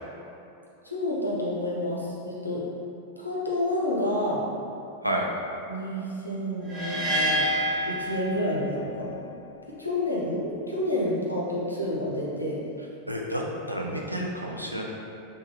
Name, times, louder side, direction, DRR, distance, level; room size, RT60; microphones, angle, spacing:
voice 1, 0.8-2.6 3.2-4.4 5.7-7.4 7.8-9.2 9.7-12.6, left 1 dB, 85° left, -5 dB, 0.5 m, -29 dB
sound 1, 6.7-8.8, equal, 20° right, 0.7 m, -27 dB
voice 2, 13.1-14.8, right 1 dB, 90° right, -2 dB, 0.3 m, -30 dB
3.0 x 2.3 x 2.8 m, 2.7 s
figure-of-eight pair, 90°, 0 cm